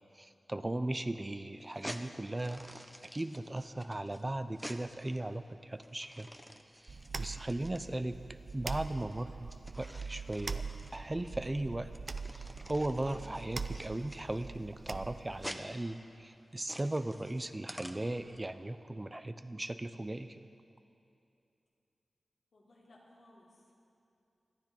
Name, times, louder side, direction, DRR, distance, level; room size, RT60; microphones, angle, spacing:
voice 1, 0.1-6.3 6.8-8.2 8.5-10.6 10.9-11.9 12.4-20.5, right 1 dB, 25° right, 10 dB, 0.7 m, -37 dB
sound 1, 1.6-18.4, equal, 5° right, 1.1 m, -50 dB
sound 2, 6.9-15.5, right 4 dB, 65° right, 0.6 m, -43 dB
voice 2, 22.5-23.8, left 1 dB, 80° left, -6 dB, 3.6 m, -61 dB
25.5 x 9.8 x 4.5 m, 2.6 s
cardioid pair, 45°, 0 cm